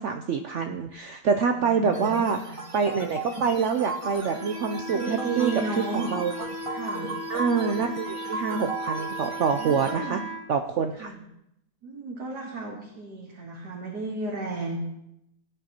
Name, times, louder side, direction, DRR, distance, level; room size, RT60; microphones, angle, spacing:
voice 1, 0.0-6.3 7.3-10.2 10.5-11.1, right 6 dB, 65° right, 5 dB, 0.7 m, -26 dB
voice 2, 1.6-2.6 4.9-6.1 6.7-7.1 9.6-10.2 11.0-11.2 11.8-14.8, right 3 dB, 85° right, -2 dB, 2.1 m, -33 dB
sound 1, 1.9-9.9, right 2 dB, 20° right, 1.6 m, -37 dB
Wind instrument woodwind instrument, 4.3-10.4, right 1 dB, 35° left, 2.7 m, -36 dB
17.0 x 9.2 x 2.9 m, 0.82 s
omnidirectional pair, 1.7 m